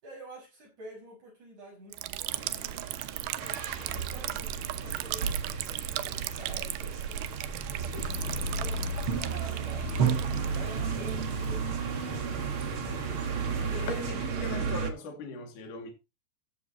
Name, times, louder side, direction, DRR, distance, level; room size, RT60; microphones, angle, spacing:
voice 1, 0.0-5.4 5.7-7.3 7.7-8.8 9.1-11.7 12.3-14.5, right 1 dB, 45° right, 7.0 m, -49 dB
Liquid, 1.9-14.4, right 14 dB, 80° right, 2.2 m, -38 dB
sound 1, 2.3-14.9, right 5 dB, 65° right, 1.3 m, -33 dB
sound 2, 7.9-14.1, left 7 dB, 75° left, 4.0 m, -45 dB
voice 2, 13.7-15.9, left 3 dB, 50° left, 3.5 m, -39 dB
14.0 x 11.0 x 3.0 m
omnidirectional pair, 5.0 m